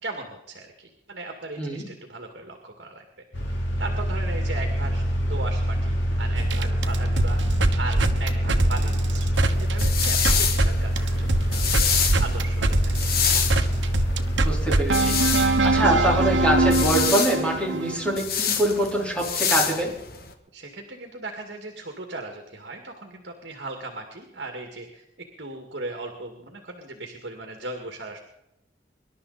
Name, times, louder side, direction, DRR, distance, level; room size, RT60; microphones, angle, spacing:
voice 1, 0.0-3.0 3.5-7.4 7.8-9.3 9.6-13.1 20.5-25.0 25.4-28.2, right 2 dB, 65° right, 4 dB, 2.1 m, -37 dB
sound 1, 3.3-16.9, equal, 85° left, 3.5 m, -25 dB
sound 2, 6.3-10.7 11.0-18.2, right 2 dB, 85° right, 1.1 m, -24 dB
sound 3, 9.3-20.3, left 7 dB, 55° left, 1.6 m, -27 dB
voice 2, 14.4-15.2 15.6-19.9, right 1 dB, 5° left, -2 dB, 4.1 m, -24 dB
25.0 x 11.5 x 4.2 m, 0.86 s
head